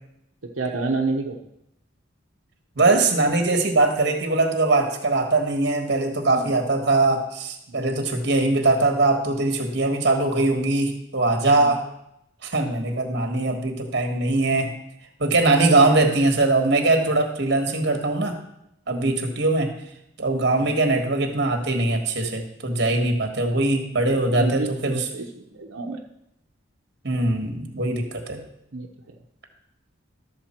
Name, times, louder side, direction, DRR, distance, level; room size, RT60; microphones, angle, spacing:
voice 1, 0.4-1.4 6.3-6.5 7.7-7.8 11.6-11.7 15.8-16.0 18.9-19.2 20.5-20.7 24.3-26.0 28.7-29.2, right 3 dB, 85° right, 0 dB, 0.9 m, -30 dB
voice 2, 2.8-11.8 12.4-14.8 15.2-18.4 18.9-19.7 20.2-24.9 27.0-28.4, right 2 dB, 55° right, 4 dB, 1.5 m, -21 dB
12.5 x 6.8 x 4.4 m, 0.81 s
head